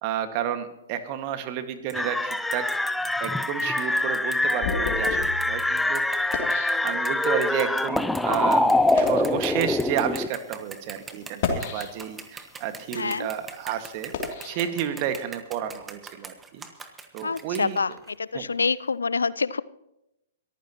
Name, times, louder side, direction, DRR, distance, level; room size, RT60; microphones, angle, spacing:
voice 1, 0.0-2.7 3.2-6.3 6.8-14.1 14.4-16.6 17.1-17.8 18.3-18.5, right 10 dB, 40° right, 9 dB, 1.8 m, -31 dB
sound 1, 1.9-10.3, left 2 dB, 5° left, 0.5 m, -24 dB
sound 2, 1.9-2.0 2.3-18.1, right 5 dB, 15° right, 1.6 m, -42 dB
sound 3, 3.7-7.5 8.1-8.3 8.8-9.3 10.1-10.3 11.2-12.3 12.8-15.3, left 5 dB, 45° left, 3.0 m, -34 dB
voice 2, 12.9-13.3 17.2-17.9 18.2-19.6, left 5 dB, 75° left, 20 dB, 0.5 m, -26 dB
22.5 x 14.5 x 3.0 m, 0.87 s
figure-of-eight pair, 115°, 0 cm